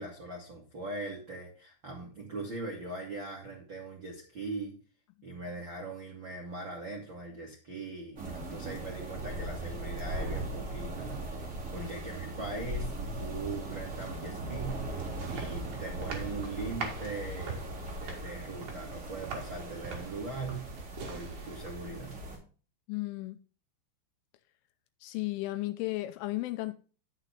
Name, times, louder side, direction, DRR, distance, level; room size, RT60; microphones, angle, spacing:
voice 1, 0.0-4.8 5.2-15.0 15.3-17.7 17.9-20.6 21.0-22.2, right 3 dB, 85° right, 1.0 m, -40 dB
sound 1, 8.2-22.4, right 1 dB, 25° right, 1.9 m, -39 dB
sound 2, 14.3-22.1, right 5 dB, 50° right, 2.8 m, -44 dB
voice 2, 22.9-23.4 25.0-26.7, left 19 dB, 85° left, 2.9 m, -34 dB
10.5 x 7.5 x 3.5 m
omnidirectional pair, 5.9 m